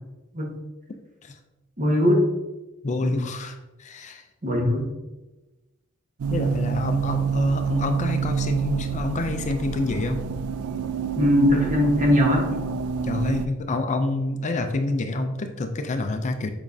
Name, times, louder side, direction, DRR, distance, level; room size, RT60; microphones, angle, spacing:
voice 1, 1.8-2.2 3.0-3.2 4.4-4.9 11.2-12.5, left 1 dB, 35° right, -1 dB, 1.3 m, -20 dB
voice 2, 2.8-4.2 6.3-10.3 13.0-16.5, left 2 dB, 35° left, 7 dB, 0.4 m, -27 dB
sound 1, 6.2-13.5, right 6 dB, 85° right, 0.4 m, -28 dB
7.2 x 5.0 x 2.7 m, 1.1 s
head